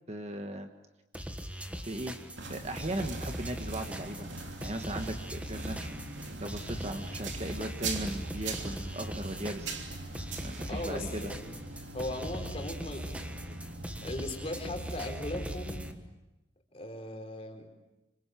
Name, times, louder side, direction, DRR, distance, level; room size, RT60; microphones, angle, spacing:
voice 1, 0.1-0.7 1.9-2.1 2.5-4.3 4.6-5.9 6.4-9.8 10.4-11.3, right 1 dB, 35° right, 6 dB, 1.6 m, -37 dB
sound 1, 1.1-15.9, equal, 5° right, 1.5 m, -40 dB
sound 2, 2.4-15.9, right 3 dB, 65° right, 3.2 m, -42 dB
voice 2, 10.7-11.6 11.9-13.6 14.0-15.8 16.7-17.7, left 1 dB, 30° left, 4 dB, 4.0 m, -38 dB
27.0 x 25.5 x 7.7 m, 1.0 s
head